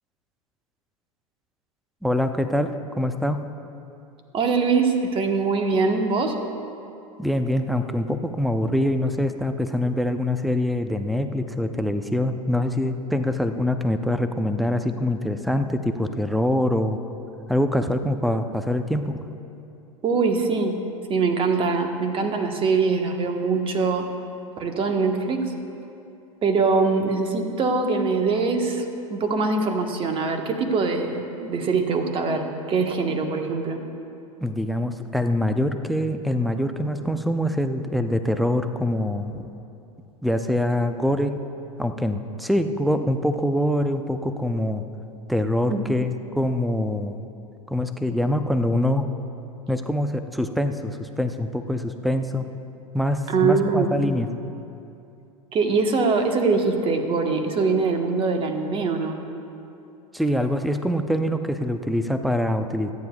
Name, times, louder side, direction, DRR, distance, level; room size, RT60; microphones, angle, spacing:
voice 1, 2.0-3.4 7.2-17.0 17.5-19.2 34.4-39.5 40.2-41.4 41.8-44.8 45.3-47.2 47.7-49.0 49.7-52.5 52.9-54.3 60.1-62.9, left 1 dB, ahead, 8 dB, 0.6 m, -24 dB
voice 2, 4.3-6.4 20.0-20.8 21.1-24.1 24.6-25.5 26.4-33.8 45.7-45.8 53.3-53.9 55.5-59.2, right 4 dB, 30° right, 4 dB, 1.3 m, -23 dB
25.5 x 9.6 x 2.4 m, 2.7 s
hypercardioid pair, 90°, 18 cm